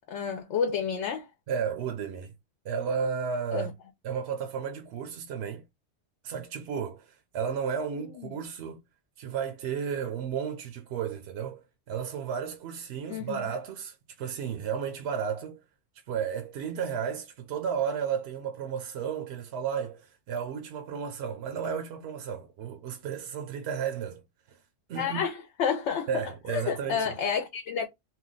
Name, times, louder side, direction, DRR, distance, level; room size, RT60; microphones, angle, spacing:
voice 1, 0.1-1.3 3.5-3.7 8.2-8.3 13.1-13.4 25.0-27.9, left 6 dB, 80° left, 0.9 m, -30 dB
voice 2, 1.5-2.3 2.6-3.7 4.0-5.6 6.2-8.8 9.2-15.6 16.1-24.2 24.5-24.6 24.9-25.2 26.1-27.1, right 7 dB, 70° right, 0.8 m, -33 dB
2.7 x 2.2 x 3.6 m
omnidirectional pair, 1.2 m